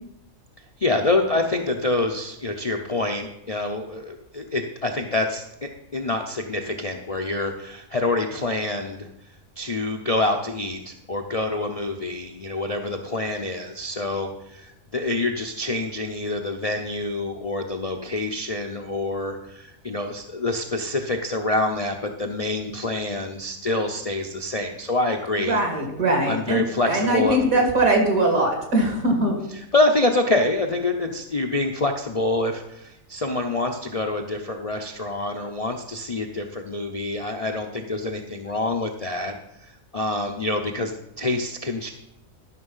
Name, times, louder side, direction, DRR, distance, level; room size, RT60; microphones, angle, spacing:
voice 1, 0.8-9.1 9.6-25.6 26.3-27.4 29.5-39.3 39.6-41.9, left 2 dB, 40° left, 2 dB, 0.5 m, -26 dB
voice 2, 25.4-29.3, right 1 dB, 70° right, 2 dB, 2.7 m, -21 dB
12.0 x 5.9 x 5.5 m, 0.83 s
omnidirectional pair, 1.5 m